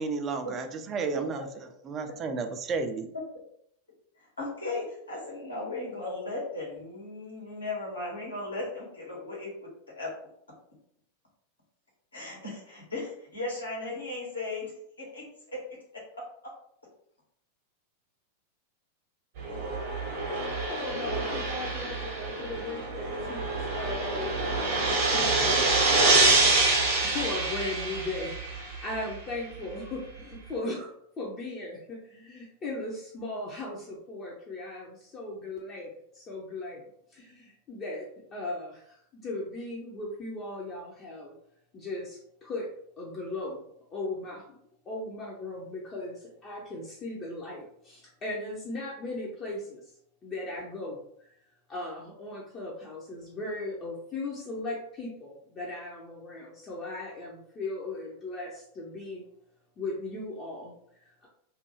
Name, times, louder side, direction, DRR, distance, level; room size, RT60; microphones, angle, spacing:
voice 1, 0.0-1.5 1.9-3.1, right 4 dB, 25° right, 6 dB, 0.3 m, -32 dB
voice 2, 4.2-9.7 10.0-10.1 12.1-14.7 15.0-15.6, left 2 dB, 80° left, -4 dB, 1.1 m, -36 dB
sound 1, 19.4-28.9, right 3 dB, 50° right, 0.8 m, -26 dB
voice 3, 20.7-26.1 27.1-36.8 37.1-41.3 41.7-42.7 43.0-43.6 43.9-44.6 44.9-49.8 50.2-51.3 51.7-59.2 59.8-61.3, left 2 dB, 30° left, -4 dB, 0.6 m, -37 dB
2.4 x 2.2 x 3.0 m, 0.68 s
figure-of-eight pair, 90°, 0 cm